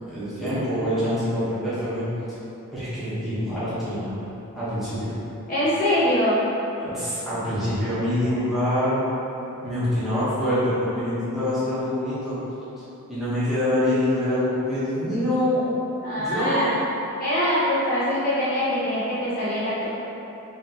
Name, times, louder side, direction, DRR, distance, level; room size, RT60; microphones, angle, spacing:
voice 1, 0.1-2.1 2.7-4.1 4.5-5.1 6.8-9.0 9.6-12.4 13.1-15.7 16.2-16.7, left 1 dB, ahead, -14 dB, 1.0 m, -25 dB
voice 2, 5.5-6.4 16.0-16.7 17.2-19.9, left 1 dB, 40° left, -10 dB, 0.9 m, -23 dB
4.2 x 3.1 x 2.8 m, 3.0 s
head